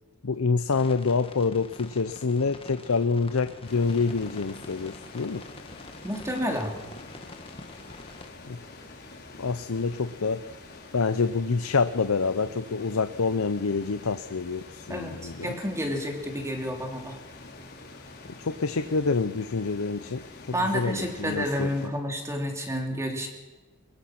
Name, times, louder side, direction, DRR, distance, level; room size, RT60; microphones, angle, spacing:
voice 1, 0.2-5.5 8.5-8.6 9.4-10.5 10.9-15.6 18.4-21.7, left 4 dB, 75° left, 11 dB, 0.7 m, -27 dB
sound 1, 0.7-8.3, left 2 dB, 25° left, 1.6 m, -46 dB
sound 2, 3.6-21.9, left 3 dB, 50° left, 4.1 m, -46 dB
voice 2, 6.0-6.8 14.9-17.2 20.5-23.3, equal, 15° right, 2 dB, 3.0 m, -30 dB
22.0 x 22.0 x 6.0 m, 1.2 s
head